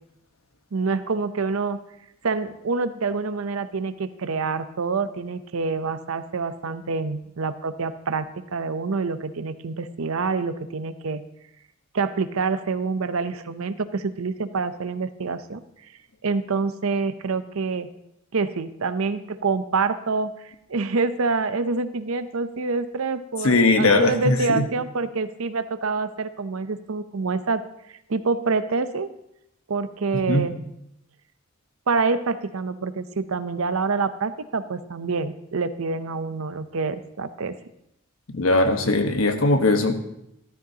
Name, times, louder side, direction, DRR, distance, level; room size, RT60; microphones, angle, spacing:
voice 1, 0.7-1.8 2.2-11.2 11.9-15.6 16.2-17.9 18.3-27.6 28.1-29.1 29.7-30.6 31.9-37.5, right 4 dB, 75° right, 12 dB, 0.7 m, -26 dB
voice 2, 23.4-24.7 30.3-30.4 38.3-40.0, left 2 dB, 75° left, 6 dB, 1.2 m, -20 dB
14.0 x 13.0 x 2.8 m, 0.80 s
head